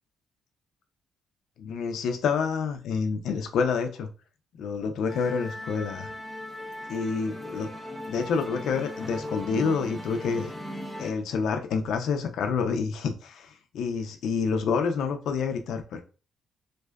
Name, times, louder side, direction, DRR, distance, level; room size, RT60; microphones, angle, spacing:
voice 1, 1.6-4.1 4.6-6.1 6.9-7.7 8.1-10.5 11.0-16.0, left 5 dB, 75° left, 5 dB, 0.3 m, -28 dB
Musical instrument, 5.1-11.1, left 1 dB, 5° right, 0.5 m, -38 dB
2.6 x 2.1 x 2.2 m, 0.34 s
cardioid pair, 90°, 0 cm